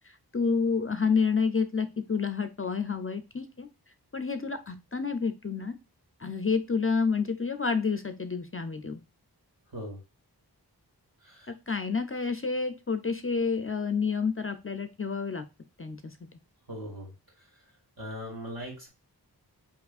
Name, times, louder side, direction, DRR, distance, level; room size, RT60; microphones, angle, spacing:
voice 1, 0.3-3.7 4.1-5.7 6.2-9.0 11.5-15.4 15.8-16.1, left 5 dB, 35° left, 9 dB, 0.5 m, -29 dB
voice 2, 16.7-17.1 18.0-18.9, equal, 60° right, -2 dB, 2.6 m, -39 dB
4.7 x 3.4 x 2.4 m, 0.28 s
wide cardioid pair, 55°, 41 cm